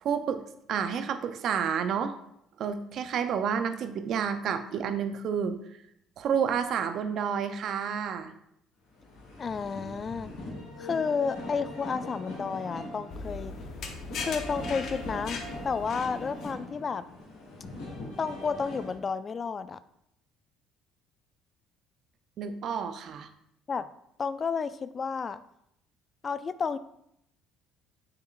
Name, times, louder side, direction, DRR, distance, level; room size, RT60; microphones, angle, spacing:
voice 1, 0.0-0.4 0.7-2.1 2.6-5.6 6.2-8.3 22.4-23.3, right 7 dB, 60° right, 9 dB, 0.6 m, -30 dB
sound 1, 8.9-19.0, left 1 dB, 75° left, 2.4 m, -41 dB
voice 2, 9.4-10.3 10.8-13.5 14.2-17.0 18.2-19.8 23.7-23.9 24.2-25.4 26.2-26.8, left 5 dB, 40° left, 14 dB, 0.4 m, -31 dB
sound 2, 13.1-16.5, left 4 dB, 60° left, 0.9 m, -39 dB
7.1 x 6.5 x 2.5 m, 0.77 s
hypercardioid pair, 65°, 0 cm